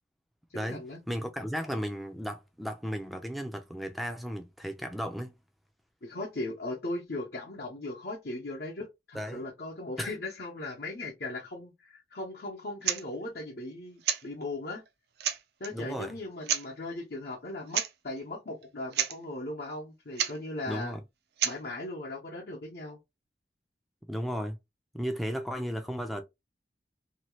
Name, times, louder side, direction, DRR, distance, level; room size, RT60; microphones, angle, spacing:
voice 1, 0.5-1.0 6.0-14.8 15.6-21.0 21.4-23.0, left 2 dB, 60° left, 0.9 m, -38 dB
voice 2, 1.1-5.3 9.1-9.4 10.0-10.1 15.7-16.2 20.7-21.0 24.1-24.6 24.9-26.2, equal, ahead, 0.4 m, -35 dB
sound 1, 12.8-13.0 14.0-14.3 14.9-15.0 15.2-15.7 16.4-16.7 17.7-17.9 18.2-18.3 18.6-18.7 18.9-19.2 20.2-20.4 21.4-21.6, right 9 dB, 65° right, 0.4 m, -29 dB
2.8 x 2.3 x 3.1 m
head